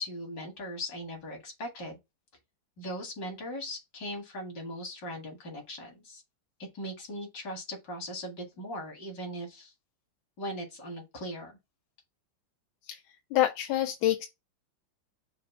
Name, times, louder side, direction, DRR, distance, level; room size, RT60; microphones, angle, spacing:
voice 1, 0.0-2.0 2.8-6.2 6.7-9.7 10.4-11.6, equal, 60° left, 2.6 m, -39 dB
voice 2, 13.3-14.3, left 13 dB, 85° left, 1.4 m, -26 dB
6.5 x 2.6 x 5.5 m
omnidirectional pair, 2.1 m